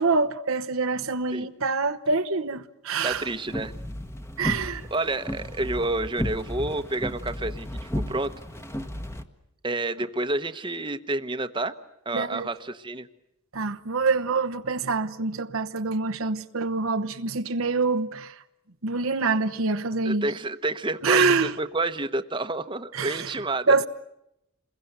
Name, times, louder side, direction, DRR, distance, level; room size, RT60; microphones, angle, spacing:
voice 1, 0.0-3.3 4.4-4.8 12.1-12.5 13.5-18.3 18.8-20.3 21.0-21.5 22.9-23.3 23.7-23.9, right 4 dB, 80° right, 1.1 m, -25 dB
voice 2, 3.0-3.7 4.9-8.3 9.6-11.7 12.0-13.1 20.0-23.8, right 2 dB, 20° right, 1.0 m, -29 dB
sound 1, 3.1-9.2, left 1 dB, 15° left, 1.3 m, -34 dB
28.0 x 21.5 x 8.0 m
head